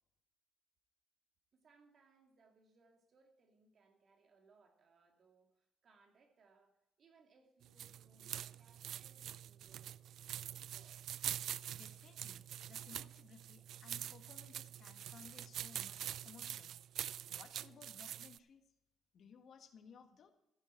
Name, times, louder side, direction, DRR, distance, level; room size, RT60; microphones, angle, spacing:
voice 1, 1.5-10.0 10.7-11.0, right 4 dB, 55° right, 3 dB, 2.5 m, -69 dB
sound 1, 7.6-18.4, right 11 dB, 75° right, 0.3 m, -45 dB
voice 2, 11.7-18.6 19.1-20.3, left 6 dB, 60° left, 7 dB, 1.6 m, -60 dB
14.5 x 9.6 x 4.6 m, 0.86 s
cardioid pair, 90°, 0 cm